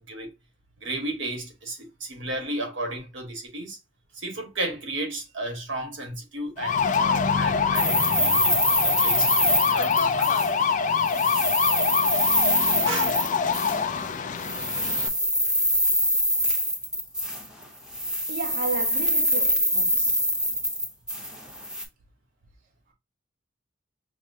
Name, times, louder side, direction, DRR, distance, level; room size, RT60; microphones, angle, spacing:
voice 1, 0.8-3.8 4.1-10.3 12.7-13.2, right 1 dB, 90° right, 1.4 m, -34 dB
sound 1, 6.6-15.1, left 5 dB, 40° left, 0.4 m, -24 dB
sound 2, 7.7-10.7 11.0-13.8 14.4-17.6 17.9-21.8, equal, 5° right, 0.8 m, -25 dB
voice 2, 18.3-20.2, right 4 dB, 50° right, 0.5 m, -33 dB
5.9 x 2.1 x 2.6 m
head